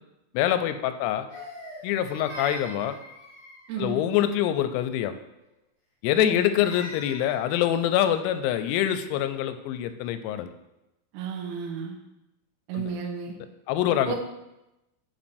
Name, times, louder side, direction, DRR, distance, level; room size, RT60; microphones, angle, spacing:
voice 1, 0.3-1.3 1.8-3.0 3.8-5.1 6.0-10.5 12.7-12.9 13.7-14.2, left 11 dB, 85° left, 10 dB, 3.2 m, -25 dB
Crying sobbing, 1.3-3.8 6.0-7.5, equal, 30° left, 2.6 m, -42 dB
voice 2, 11.1-12.0 12.7-13.4 14.1-14.2, right 6 dB, 85° right, 1 dB, 3.6 m, -32 dB
8.6 x 7.1 x 2.6 m, 0.93 s
omnidirectional pair, 5.9 m